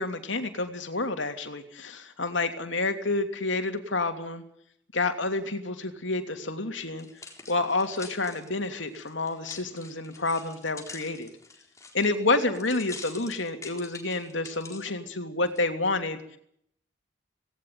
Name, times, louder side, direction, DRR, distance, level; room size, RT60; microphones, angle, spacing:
voice 1, 0.0-4.4 4.9-7.1 7.5-11.3 11.9-16.2, left 3 dB, 75° left, 7 dB, 2.9 m, -29 dB
sound 1, 6.8-14.9 15.5-15.6, left 4 dB, 15° left, 4.0 m, -46 dB
18.5 x 18.5 x 9.5 m, 0.67 s
head